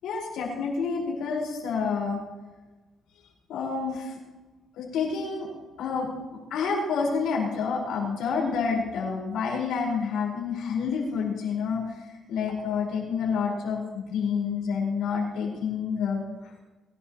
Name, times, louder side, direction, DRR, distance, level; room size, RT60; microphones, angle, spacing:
voice 1, 0.0-2.2 3.5-4.1 4.8-5.5 5.8-11.8 12.3-16.2, left 5 dB, 85° left, -2 dB, 5.0 m, -28 dB
22.5 x 12.0 x 3.1 m, 1.2 s
cardioid pair, 90°, 0 cm